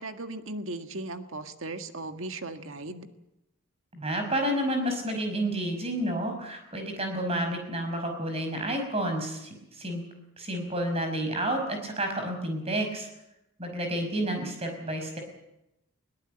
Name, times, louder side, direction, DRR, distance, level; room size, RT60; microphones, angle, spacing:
voice 1, 0.0-3.1, right 2 dB, 65° right, 8 dB, 1.7 m, -37 dB
voice 2, 3.9-10.0 10.4-13.1 13.6-15.2, right 1 dB, 25° right, 5 dB, 5.5 m, -30 dB
21.5 x 18.5 x 9.0 m, 0.88 s
head